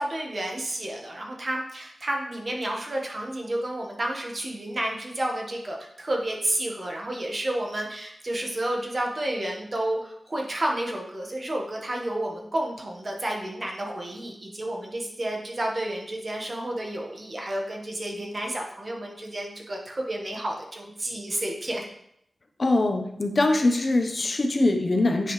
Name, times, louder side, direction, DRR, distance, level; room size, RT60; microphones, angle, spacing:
voice 1, 0.0-21.8, right 1 dB, 40° right, 0 dB, 1.4 m, -31 dB
voice 2, 22.6-25.3, left 2 dB, 45° left, 4 dB, 1.0 m, -23 dB
9.4 x 5.3 x 3.2 m, 0.75 s
wide cardioid pair, 105°, 0 cm